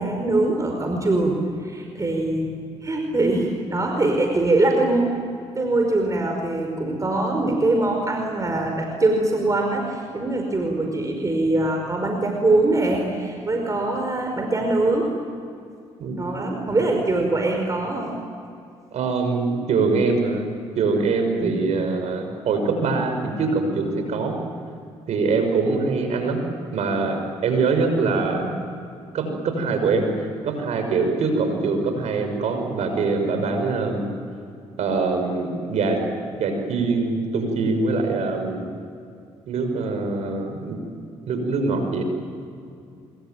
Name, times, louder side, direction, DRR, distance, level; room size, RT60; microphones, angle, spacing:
voice 1, 0.0-2.5 2.8-5.2 5.5-15.1 16.2-18.1 21.4-21.6 28.2-28.5, right 2 dB, 30° right, 2 dB, 5.1 m, -23 dB
voice 2, 16.0-16.8 18.9-20.5 20.8-24.4 25.1-26.4 26.7-28.4 29.1-30.1 30.4-34.1 34.8-36.0 36.3-38.6 39.5-40.8 41.3-42.0, right 4 dB, 70° right, 5 dB, 6.0 m, -23 dB
25.0 x 23.5 x 9.3 m, 2.4 s
supercardioid pair, 65°, 12 cm